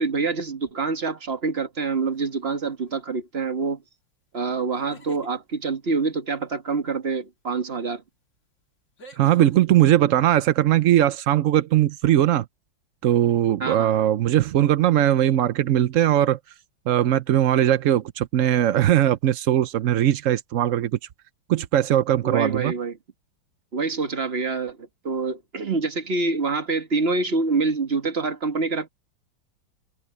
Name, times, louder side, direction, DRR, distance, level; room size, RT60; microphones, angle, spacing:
voice 1, 0.0-3.8 4.3-8.0 13.6-13.9 22.2-23.0 23.7-28.9, right 4 dB, 35° right, 1.7 m, -26 dB
sound 1, 2.1-2.5 4.7-5.3 7.6-7.7 9.0-9.5, equal, 40° left, 2.3 m, -45 dB
voice 2, 9.2-12.4 13.0-16.4 16.9-21.0 21.5-22.7, right 12 dB, 75° right, 0.7 m, -20 dB
omnidirectional pair, 2.1 m